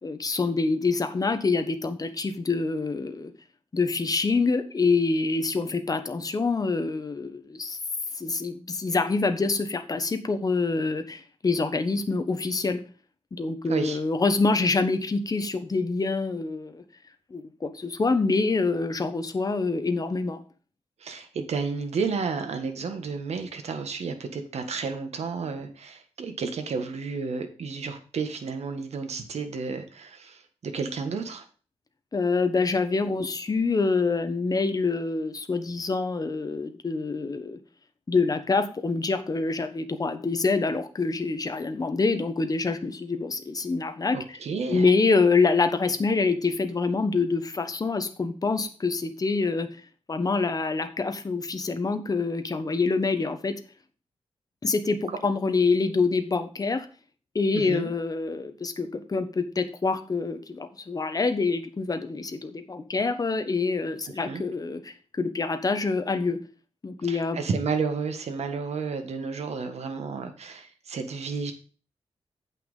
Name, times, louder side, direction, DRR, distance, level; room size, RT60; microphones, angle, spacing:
voice 1, 0.0-3.3 3.7-7.8 8.2-12.8 13.3-16.8 17.3-20.4 32.1-37.6 38.1-44.4 44.7-49.7 50.1-53.6 54.6-56.9 57.3-66.4 66.8-67.4, left 4 dB, 35° left, 8 dB, 1.2 m, -26 dB
voice 2, 21.0-31.4 44.1-44.9 55.1-55.2 57.5-57.9 64.2-64.4 67.1-71.5, right 5 dB, 80° right, 6 dB, 1.5 m, -31 dB
8.5 x 5.8 x 5.5 m, 0.38 s
wide cardioid pair, 115°, 11 cm